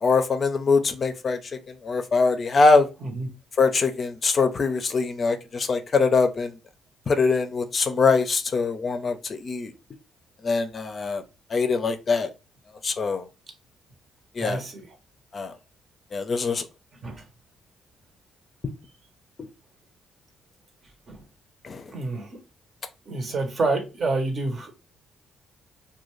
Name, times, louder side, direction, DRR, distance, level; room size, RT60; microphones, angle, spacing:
voice 1, 0.0-1.4 1.8-2.9 3.6-6.5 7.1-9.7 10.4-11.2 11.5-12.3 12.8-13.2 14.4-14.6 15.3-15.5 16.1-16.6 19.4-19.5 21.6-21.8, left 4 dB, 40° left, 0.4 m, -23 dB
voice 2, 14.4-14.9 17.0-17.2 21.1-21.2 21.9-22.4 23.1-24.7, right 3 dB, 50° right, 0.8 m, -28 dB
2.5 x 2.2 x 3.0 m
cardioid pair, 90°, 0 cm